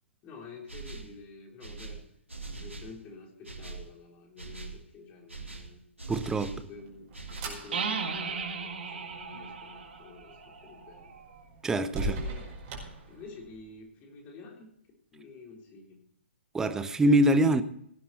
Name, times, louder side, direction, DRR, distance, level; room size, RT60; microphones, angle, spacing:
voice 1, 0.2-2.1 2.6-5.8 6.4-11.1 11.9-12.5 13.1-14.7 15.1-16.0, left 3 dB, 25° left, 3.8 m, -49 dB
sound 1, 0.7-1.2 1.6-3.0 3.4-3.9 4.4-4.8 5.3-6.7 7.1-7.6, right 3 dB, 85° right, 2.3 m, -42 dB
voice 2, 6.1-6.5 11.6-12.1 16.5-17.6, right 1 dB, 10° right, 0.8 m, -24 dB
sound 2, 6.6-13.7, right 1 dB, 35° right, 5.2 m, -42 dB
sound 3, 7.7-11.4, right 5 dB, 55° right, 2.5 m, -36 dB
17.5 x 9.6 x 4.2 m
figure-of-eight pair, 125°, 7 cm